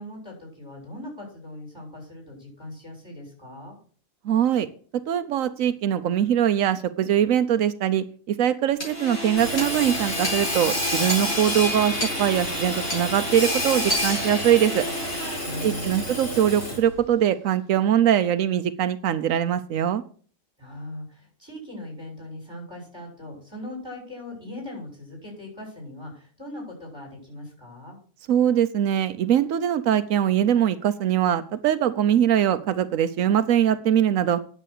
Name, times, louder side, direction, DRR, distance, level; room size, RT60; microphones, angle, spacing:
voice 1, 0.0-3.8 15.4-16.2 20.6-28.0, left 1 dB, 20° right, -1 dB, 7.2 m, -39 dB
voice 2, 4.2-4.7 5.1-14.9 15.6-20.0 28.3-34.4, right 10 dB, 90° right, 11 dB, 1.1 m, -22 dB
Hammer / Sawing, 8.8-17.0, left 1 dB, 55° left, 4.9 m, -28 dB
10.0 x 7.5 x 6.6 m, 0.43 s
omnidirectional pair, 1.4 m